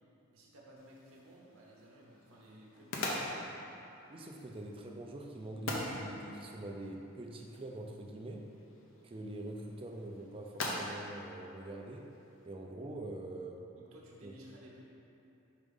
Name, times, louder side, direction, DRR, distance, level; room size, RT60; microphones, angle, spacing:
voice 1, 0.3-3.7 13.7-14.8, equal, 85° right, -4 dB, 0.8 m, -56 dB
sound 1, 0.8-12.5, left 1 dB, 70° left, 0.8 m, -44 dB
voice 2, 4.1-8.5 9.0-12.1 12.5-13.7 14.2-14.3, right 1 dB, 25° right, 1 dB, 0.5 m, -44 dB
5.1 x 3.7 x 5.3 m, 2.9 s
head